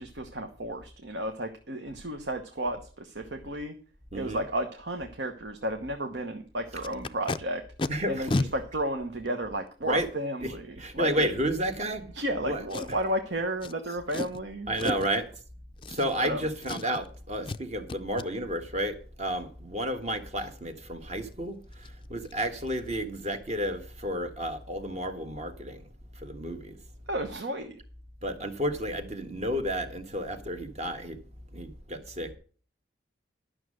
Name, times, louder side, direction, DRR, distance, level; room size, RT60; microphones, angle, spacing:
voice 1, 0.0-3.8 4.1-7.6 8.1-11.3 12.1-15.0 16.2-16.5 27.1-27.7, right 1 dB, 65° right, 1.2 m, -33 dB
voice 2, 4.1-4.4 7.9-8.3 9.8-10.1 10.4-12.0 12.4-12.6 14.7-15.2 15.9-21.6 22.1-25.8 26.2-26.8 28.2-31.2 31.5-32.3, right 1 dB, 35° right, 1.4 m, -31 dB
Packing tape duct tape, 6.8-7.4 7.8-7.9 8.3-8.5 9.3-9.4 12.7-13.1 13.6-13.7 14.1-14.4 14.8-15.2 15.8-16.3 16.6-17.1 17.4-17.6 17.9-18.3 21.3-21.4 21.7-21.9 22.2-22.4 22.7-22.9 23.2-23.3, left 2 dB, 25° left, 0.4 m, -32 dB
12.0 x 6.4 x 6.4 m
head